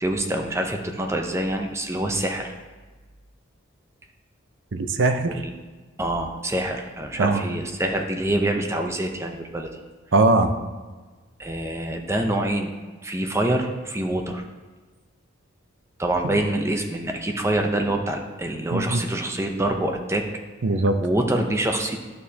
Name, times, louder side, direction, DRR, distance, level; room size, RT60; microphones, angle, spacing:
voice 1, 0.0-2.5 5.3-5.4 6.0-9.7 11.4-12.7 13.0-14.4 16.0-20.2 21.0-22.0, right 1 dB, 15° right, 3 dB, 0.6 m, -25 dB
voice 2, 4.7-5.4 7.2-7.4 10.1-10.5 16.2-16.4 18.7-19.0 20.6-20.9, right 2 dB, 60° right, 8 dB, 0.6 m, -20 dB
11.5 x 6.5 x 2.8 m, 1.3 s
head